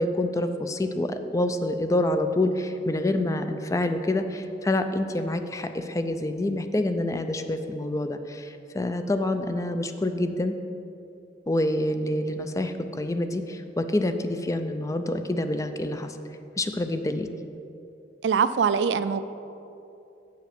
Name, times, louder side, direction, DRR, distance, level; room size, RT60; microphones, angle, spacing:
voice 1, 0.0-10.5 11.5-16.2 16.6-17.3, left 1 dB, 20° left, 8 dB, 0.4 m, -27 dB
voice 2, 18.2-19.2, right 6 dB, 80° right, 12 dB, 0.3 m, -23 dB
8.0 x 5.7 x 5.9 m, 2.7 s
head